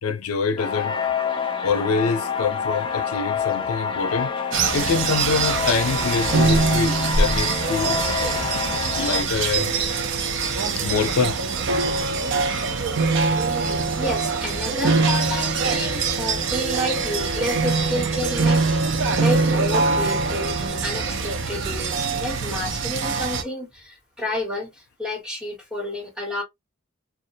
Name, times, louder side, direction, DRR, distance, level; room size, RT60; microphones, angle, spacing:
voice 1, 0.0-1.0 1.6-4.3 4.7-8.0 8.9-9.7 10.3-11.4, left 5 dB, 85° left, 0.5 m, -25 dB
sound 1, 0.6-9.2, left 6 dB, 25° left, 0.3 m, -27 dB
sound 2, 4.5-23.4, right 4 dB, 55° right, 0.4 m, -23 dB
voice 2, 13.5-26.4, left 1 dB, 5° right, 0.9 m, -31 dB
2.3 x 2.1 x 2.6 m
head